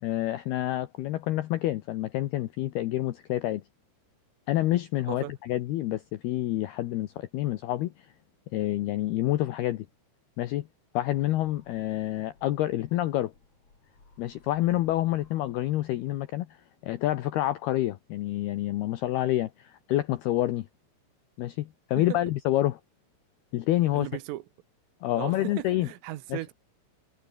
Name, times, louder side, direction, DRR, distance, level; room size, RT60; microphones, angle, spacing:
voice 1, 0.0-3.6 4.5-8.1 8.5-9.9 10.4-10.7 10.9-13.3 14.2-16.5 16.8-20.7 21.4-22.8 23.5-24.1 25.0-25.9 26.3-26.4, left 15 dB, 85° left, 2.2 m, -28 dB
sound 1, 11.2-16.5, left 3 dB, 30° left, 7.9 m, -61 dB
voice 2, 23.9-24.4 25.2-26.5, right 16 dB, 80° right, 3.8 m, -37 dB
omnidirectional pair, 5.9 m